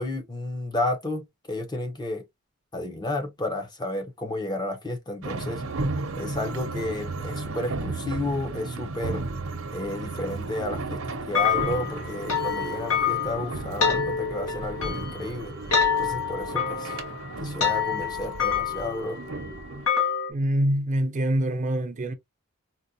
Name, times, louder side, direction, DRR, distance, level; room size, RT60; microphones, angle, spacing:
voice 1, 0.0-2.2 2.7-5.6 6.2-9.2 9.7-15.5 16.0-17.0 17.4-19.2, left 1 dB, 20° left, 0.7 m, -32 dB
sound 1, 5.2-19.9, right 3 dB, 70° right, 0.7 m, -34 dB
sound 2, 11.3-20.3, left 7 dB, 75° left, 1.1 m, -27 dB
voice 2, 20.3-22.1, right 1 dB, 35° right, 0.5 m, -25 dB
4.1 x 2.3 x 2.5 m
head